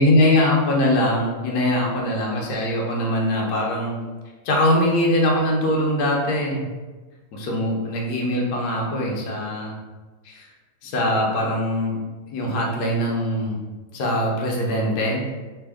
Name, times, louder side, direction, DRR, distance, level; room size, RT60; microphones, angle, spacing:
voice 1, 0.0-3.9 4.4-6.6 7.3-9.7 10.2-10.5 10.8-12.0 12.3-13.6 13.9-15.2, left 1 dB, 65° left, -2 dB, 0.9 m, -22 dB
3.4 x 2.3 x 3.4 m, 1.2 s
omnidirectional pair, 2.4 m